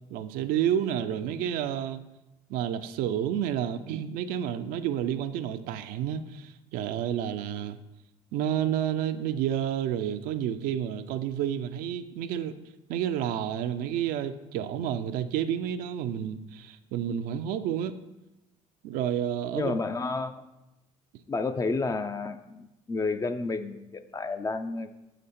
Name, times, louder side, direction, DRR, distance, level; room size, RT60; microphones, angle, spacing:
voice 1, 0.1-2.1 2.5-7.8 8.3-12.5 12.9-17.9 18.8-19.7, right 10 dB, 75° right, 9 dB, 0.5 m, -30 dB
voice 2, 19.5-20.4 21.3-24.9, left 3 dB, 20° left, 9 dB, 0.5 m, -31 dB
6.5 x 5.0 x 4.3 m, 0.95 s
supercardioid pair, 90°, 15 cm